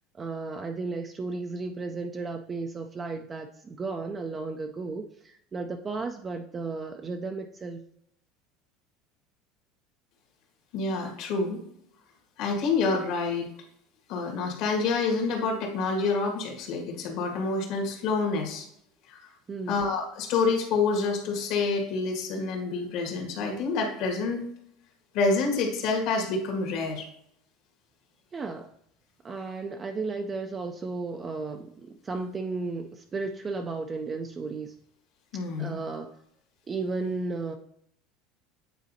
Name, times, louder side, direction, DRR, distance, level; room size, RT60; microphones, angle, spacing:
voice 1, 0.1-7.8 19.5-19.8 28.3-28.7 29.2-34.7 35.6-36.2 36.7-37.5, right 3 dB, 20° right, 4 dB, 0.4 m, -34 dB
voice 2, 10.7-11.6 12.4-13.5 14.1-18.7 19.1-19.2 19.7-24.4 25.1-27.1 35.3-35.8, left 4 dB, 60° left, 1 dB, 1.8 m, -27 dB
9.0 x 4.1 x 2.7 m, 0.73 s
supercardioid pair, 140°, 0 cm